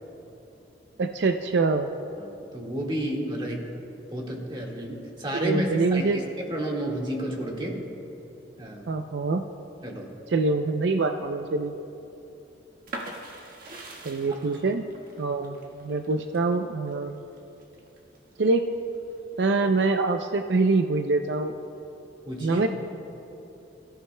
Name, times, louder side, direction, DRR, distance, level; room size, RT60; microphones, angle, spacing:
voice 1, 1.0-1.9 5.3-6.2 8.9-9.5 10.3-11.7 14.0-14.9 15.2-17.1 18.4-18.7 19.4-21.5 22.4-22.7, right 3 dB, 75° right, 6 dB, 0.5 m, -25 dB
voice 2, 2.2-3.6 4.1-7.8 8.6-8.9 9.8-10.1 14.3-14.5 22.3-22.7, equal, 25° right, -1 dB, 1.8 m, -31 dB
sound 1, 12.9-18.5 18.9-19.8, right 2 dB, 55° right, 1.5 m, -42 dB
23.5 x 14.0 x 2.2 m, 2.9 s
head